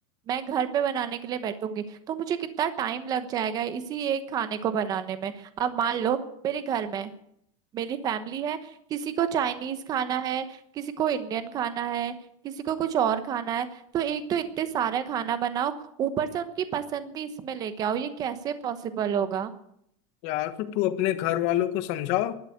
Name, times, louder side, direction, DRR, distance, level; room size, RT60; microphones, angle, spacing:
voice 1, 0.3-6.2 6.4-7.1 7.7-12.1 12.4-15.7 16.0-19.5, right 8 dB, 25° right, 11 dB, 1.1 m, -29 dB
voice 2, 20.2-22.4, left 13 dB, 40° left, 11 dB, 1.3 m, -26 dB
12.5 x 12.0 x 9.4 m, 0.72 s
supercardioid pair, 165°, 17 cm